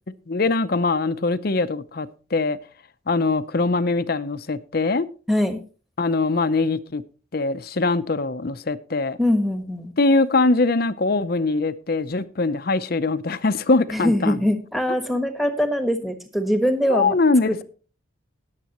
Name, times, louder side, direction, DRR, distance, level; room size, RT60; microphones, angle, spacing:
voice 1, 0.3-2.6 3.1-5.1 6.0-7.0 7.3-9.2 10.0-14.4 16.9-17.6, left 3 dB, 45° left, 0.6 m, -22 dB
voice 2, 5.3-5.6 9.2-9.9 13.9-17.1, equal, ahead, 1.3 m, -22 dB
19.5 x 7.5 x 3.0 m
head